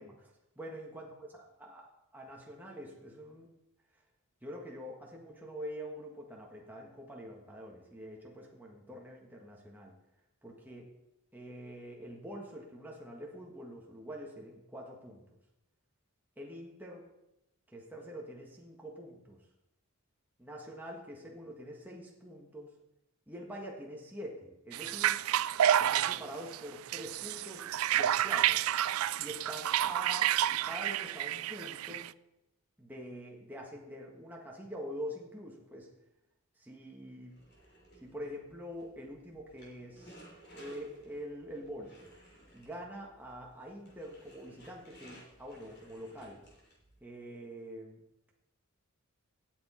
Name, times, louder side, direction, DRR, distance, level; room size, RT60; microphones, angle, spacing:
voice 1, 0.0-1.1 1.3-1.9 2.1-3.5 4.4-9.9 10.4-10.9 11.3-15.4 16.4-17.1 17.7-19.5 20.4-22.7 23.3-25.2 25.8-28.6 29.2-32.1 32.8-35.9 36.6-37.3 38.0-40.2 40.5-42.1 42.5-46.4 47.0-48.0, equal, 10° right, -1 dB, 1.5 m, -45 dB
sound 1, 24.7-32.1, right 11 dB, 75° right, 0.3 m, -30 dB
sound 2, 37.3-47.0, right 1 dB, 50° left, 3.4 m, -57 dB
17.5 x 7.1 x 4.3 m, 0.91 s
head